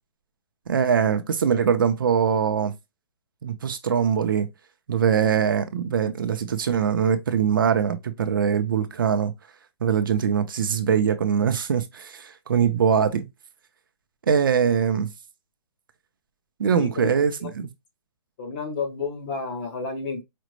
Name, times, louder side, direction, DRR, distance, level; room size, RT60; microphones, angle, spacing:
voice 1, 0.7-2.7 3.4-4.5 4.9-9.3 9.8-13.3 14.3-15.1 16.6-17.7, right 7 dB, 50° right, 0.5 m, -22 dB
voice 2, 16.7-17.1 17.4-17.5 18.4-20.2, left 4 dB, 20° left, 0.7 m, -31 dB
5.0 x 2.1 x 3.0 m
hypercardioid pair, 175°, 15 cm